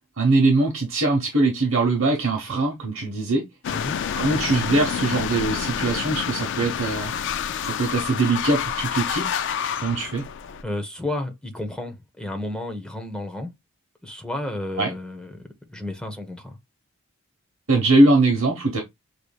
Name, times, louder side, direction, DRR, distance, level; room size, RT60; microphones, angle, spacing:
voice 1, 0.2-3.4 4.2-7.1 7.8-9.3 9.8-10.3 14.8-14.9 17.7-18.8, right 2 dB, 60° right, 1.1 m, -21 dB
sound 1, 3.6-10.6, left 8 dB, 55° left, 0.3 m, -28 dB
voice 2, 10.6-13.5 14.0-16.6, left 1 dB, 5° left, 0.9 m, -32 dB
6.7 x 3.2 x 2.3 m
head